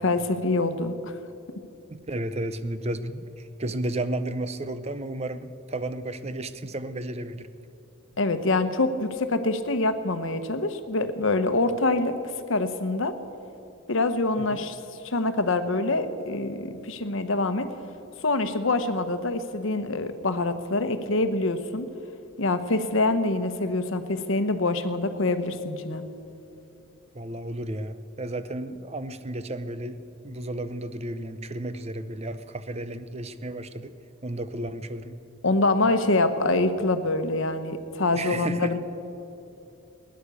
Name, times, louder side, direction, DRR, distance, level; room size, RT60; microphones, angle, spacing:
voice 1, 0.0-1.1 8.2-12.2 12.5-13.1 13.9-14.8 15.0-17.7 18.2-21.9 22.4-26.0 35.4-38.8, left 2 dB, 65° left, 10 dB, 1.0 m, -25 dB
voice 2, 1.9-7.5 14.4-14.6 27.1-30.0 30.2-33.9 34.2-35.2 38.1-38.8, right 1 dB, 30° right, 12 dB, 0.6 m, -33 dB
16.5 x 10.5 x 8.3 m, 2.8 s
head